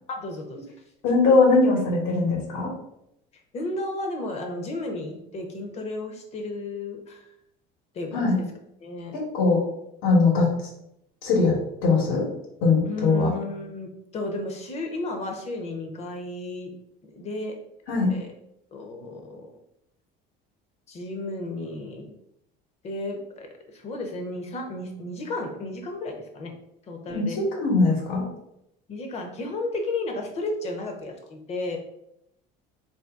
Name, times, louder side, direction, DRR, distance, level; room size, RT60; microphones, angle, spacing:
voice 1, 0.1-0.6 3.5-7.2 7.9-8.4 8.8-9.1 12.8-16.7 17.0-17.6 18.1-18.3 18.7-19.5 20.9-22.1 22.8-23.5 23.7-26.5 26.9-27.4 28.9-31.8, left 2 dB, 35° left, 3 dB, 0.8 m, -33 dB
voice 2, 1.0-2.7 8.1-8.4 9.3-9.6 10.0-10.5 11.2-12.2 12.6-13.3 17.9-18.1 27.1-28.3, left 3 dB, 85° left, -3 dB, 1.3 m, -21 dB
3.9 x 2.7 x 3.6 m, 0.79 s
cardioid pair, 155°, 19 cm